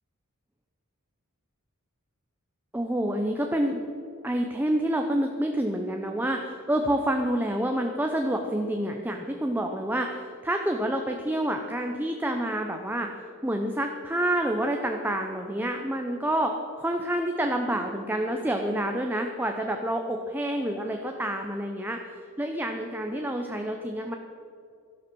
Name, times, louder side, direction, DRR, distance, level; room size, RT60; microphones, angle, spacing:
voice 1, 2.7-3.8 4.2-22.0 22.4-24.2, right 1 dB, 10° right, 3 dB, 0.8 m, -28 dB
12.5 x 11.5 x 6.3 m, 2.5 s
head